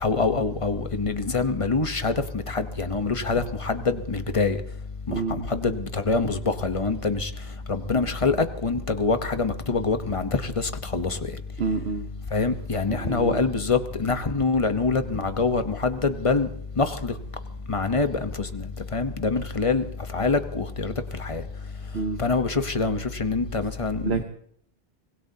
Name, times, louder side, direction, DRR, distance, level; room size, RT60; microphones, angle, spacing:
voice 1, 0.0-4.6 5.5-7.3 7.7-8.4 8.6-11.2 12.3-16.5 16.8-17.1 17.7-18.7 18.9-19.8 20.1-20.9 21.2-21.4 22.2-24.2, left 4 dB, 35° left, 1.0 m, -25 dB
voice 2, 5.1-5.5 11.6-12.1 12.9-13.4 21.9-22.2 24.0-24.2, right 4 dB, 85° right, 1.2 m, -28 dB
25.0 x 19.5 x 2.8 m
omnidirectional pair, 1.0 m